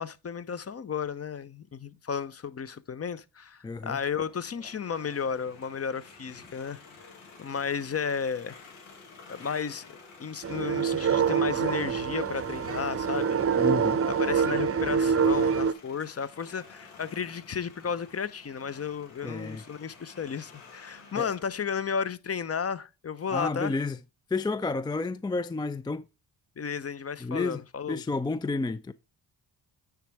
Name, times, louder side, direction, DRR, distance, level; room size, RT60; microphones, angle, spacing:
voice 1, 0.0-6.8 7.4-8.6 9.3-9.8 10.2-13.5 14.2-23.8 26.6-28.0, left 6 dB, 30° left, 0.7 m, -33 dB
voice 2, 3.6-4.0 13.6-14.0 19.2-19.6 21.2-21.3 23.3-24.0 24.3-26.0 27.2-27.6 27.9-28.9, left 3 dB, 10° left, 0.3 m, -30 dB
sound 1, 4.2-21.8, left 4 dB, 90° left, 1.7 m, -52 dB
sound 2, 10.4-15.7, right 6 dB, 30° right, 0.7 m, -26 dB
9.1 x 3.4 x 4.7 m
hypercardioid pair, 45°, 46 cm